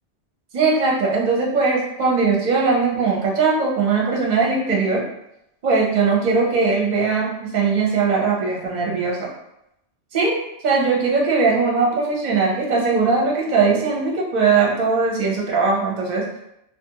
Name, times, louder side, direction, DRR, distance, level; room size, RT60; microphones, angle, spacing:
voice 1, 0.5-5.0 5.6-9.3 10.1-16.2, right 4 dB, 45° right, -2 dB, 0.7 m, -20 dB
2.5 x 2.3 x 2.7 m, 0.83 s
omnidirectional pair, 1.2 m